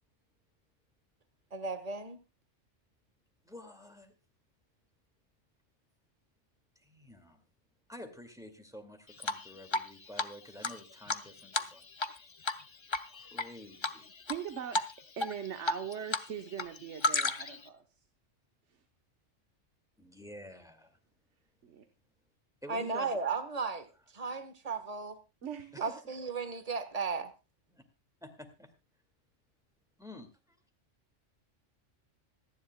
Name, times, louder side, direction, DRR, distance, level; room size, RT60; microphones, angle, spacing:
voice 1, 1.5-2.2 22.7-23.9 24.1-25.2 25.8-27.3, right 4 dB, 30° right, 10 dB, 1.4 m, -35 dB
voice 2, 3.4-4.1 6.8-7.4 7.9-11.9 13.1-14.1 20.0-21.0 22.6-23.2 25.7-26.0 27.7-27.8 28.2-28.7 30.0-30.6, left 1 dB, 5° right, 5 dB, 2.1 m, -50 dB
Drip, 9.2-9.9 10.2-10.3 10.6-12.2 12.4-12.6 12.9-13.5 13.8-14.4 14.7-14.9 15.2-16.2 16.5-17.6, left 2 dB, 30° left, 0.5 m, -32 dB
voice 3, 14.2-14.8 15.2-17.8 18.7-18.8 21.6-21.8 25.4-26.0, right 8 dB, 70° right, 6 dB, 1.3 m, -41 dB
26.0 x 10.5 x 2.2 m, 0.27 s
omnidirectional pair, 1.3 m